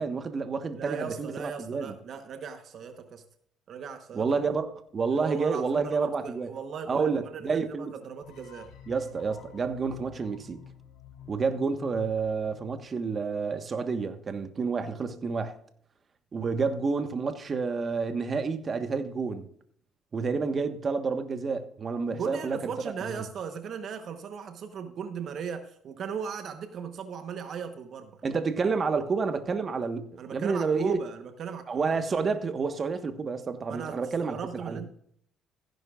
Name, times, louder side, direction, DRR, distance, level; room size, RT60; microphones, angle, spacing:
voice 1, 0.0-1.9 4.1-6.5 6.9-7.9 8.9-10.6 11.3-15.5 16.3-19.5 20.1-22.7 23.1-23.2 28.2-31.0 31.7-34.8, right 4 dB, 40° right, 1.3 m, -29 dB
voice 2, 0.7-3.2 3.7-4.3 5.1-8.7 22.1-28.2 30.2-31.9 33.7-34.9, right 6 dB, 55° right, 1.1 m, -38 dB
sound 1, 8.2-13.3, left 7 dB, 80° left, 3.1 m, -50 dB
15.5 x 10.5 x 2.4 m
cardioid pair, 90°, 0 cm